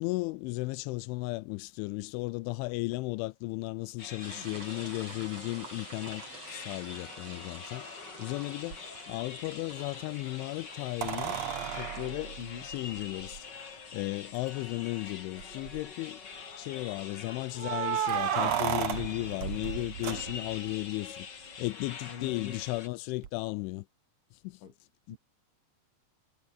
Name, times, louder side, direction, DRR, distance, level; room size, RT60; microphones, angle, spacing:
voice 1, 0.0-11.4 11.8-16.2 16.6-21.3 21.6-23.9 24.4-24.6, left 22 dB, 85° left, 2.9 m, -35 dB
sound 1, 4.0-22.9, left 6 dB, 50° left, 1.3 m, -45 dB
sound 2, 4.2-18.6, right 3 dB, 30° right, 7.1 m, -51 dB
sound 3, 8.7-8.8 11.0-13.4 14.4-14.5 14.7-14.8 15.4-15.9 17.6-20.7 23.2-23.3, right 9 dB, 80° right, 1.5 m, -33 dB
voice 2, 22.1-22.6 24.6-24.7 25.1-25.2, left 8 dB, 65° left, 5.9 m, -42 dB
omnidirectional pair, 5.8 m